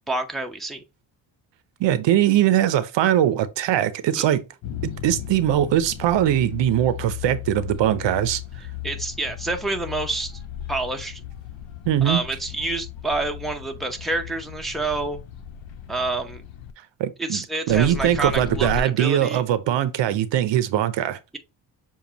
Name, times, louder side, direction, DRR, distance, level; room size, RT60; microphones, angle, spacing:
voice 1, 0.1-0.8 4.2-4.3 8.8-10.4 10.7-11.2 12.0-15.2 15.9-16.4 17.2-19.4, right 2 dB, ahead, 0.7 m, -28 dB
voice 2, 1.8-4.4 4.8-8.4 11.9-12.2 17.0-17.4 17.7-21.2, right 11 dB, 65° right, 0.7 m, -21 dB
sound 1, 4.6-16.7 17.7-18.8, left 8 dB, 70° left, 1.0 m, -36 dB
7.0 x 2.4 x 2.8 m
cardioid pair, 110°, 46 cm